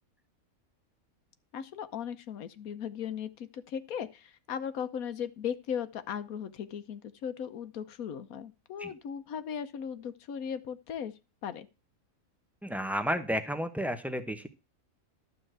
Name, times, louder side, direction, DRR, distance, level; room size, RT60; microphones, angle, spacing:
voice 1, 1.5-11.1 11.4-11.7, left 8 dB, 80° left, 12 dB, 1.3 m, -37 dB
voice 2, 12.6-14.5, equal, ahead, 8 dB, 0.8 m, -32 dB
12.0 x 4.5 x 7.8 m, 0.30 s
omnidirectional pair, 1.5 m